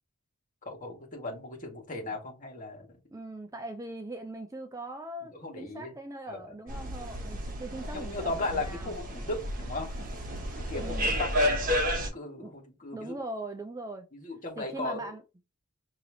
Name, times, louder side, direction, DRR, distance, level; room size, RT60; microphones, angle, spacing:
voice 1, 0.7-3.0 5.4-5.9 6.3-6.4 7.9-13.2 14.1-15.1, left 2 dB, 35° left, 1.7 m, -37 dB
voice 2, 3.1-9.0 10.8-11.1 12.4-12.5 12.9-14.1 14.6-15.2, right 2 dB, 15° right, 0.4 m, -40 dB
sound 1, 6.7-12.1, equal, 40° right, 1.0 m, -31 dB
5.5 x 2.9 x 2.7 m
head